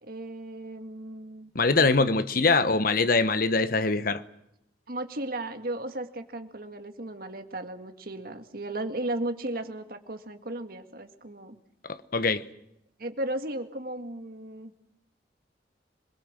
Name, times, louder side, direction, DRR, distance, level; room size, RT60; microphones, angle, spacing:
voice 1, 0.0-1.5 2.0-2.2 4.9-11.6 13.0-14.8, right 1 dB, 55° right, 2.0 m, -35 dB
voice 2, 1.5-4.2 11.8-12.4, left 3 dB, 50° left, 1.1 m, -23 dB
26.5 x 21.5 x 7.5 m
head